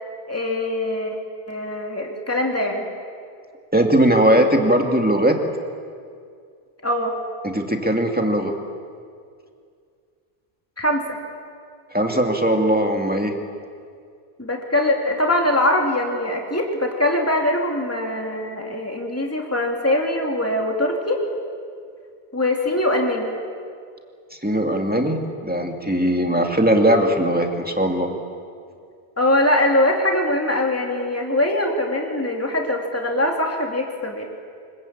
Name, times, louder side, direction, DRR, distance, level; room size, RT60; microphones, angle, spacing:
voice 1, 0.3-1.2 1.5-2.8 6.8-7.1 10.8-11.2 14.4-21.2 22.3-23.3 29.2-34.3, left 1 dB, 15° left, 1 dB, 2.6 m, -22 dB
voice 2, 3.7-5.4 7.4-8.5 11.9-13.3 24.4-28.1, right 1 dB, 10° right, 3 dB, 2.2 m, -19 dB
25.0 x 22.0 x 8.7 m, 2.2 s
omnidirectional pair, 1.1 m